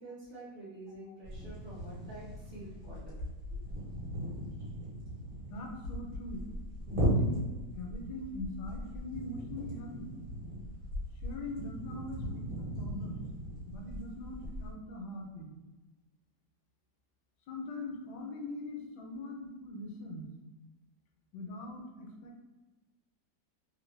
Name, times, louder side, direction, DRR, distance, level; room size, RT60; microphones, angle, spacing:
voice 1, 0.0-3.2 3.5-3.6, right 1 dB, 40° right, -7 dB, 1.0 m, -48 dB
sound 1, 1.2-14.7, equal, 55° right, 1.5 m, -38 dB
voice 2, 5.5-6.5 6.9-7.4 7.7-10.1 11.2-13.3 13.7-15.5 17.5-20.3 21.3-22.4, left 2 dB, 80° left, 1 dB, 1.2 m, -42 dB
3.3 x 2.5 x 3.1 m, 1.2 s
omnidirectional pair, 1.8 m